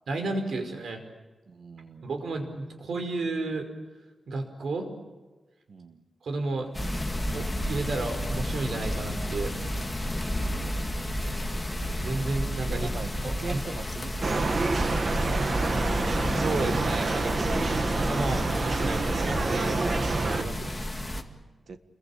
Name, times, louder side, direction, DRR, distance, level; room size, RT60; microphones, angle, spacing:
voice 1, 0.1-1.0 2.0-3.7 4.3-4.9 6.2-6.7 7.3-9.5 12.0-12.9 13.2-13.6 16.2-17.4 17.9-20.8, right 3 dB, 75° right, 6 dB, 5.1 m, -32 dB
voice 2, 1.5-2.2 5.7-6.0 10.7-11.4 12.7-15.8 21.0-21.8, right 4 dB, 60° right, 9 dB, 1.8 m, -43 dB
sound 1, 6.3-16.1, left 2 dB, 35° left, 5.7 m, -54 dB
sound 2, 6.7-21.2, equal, 10° left, 2.1 m, -31 dB
sound 3, 14.2-20.4, right 3 dB, 40° right, 1.6 m, -28 dB
28.5 x 22.5 x 8.7 m, 1.2 s
wide cardioid pair, 160°, 0 cm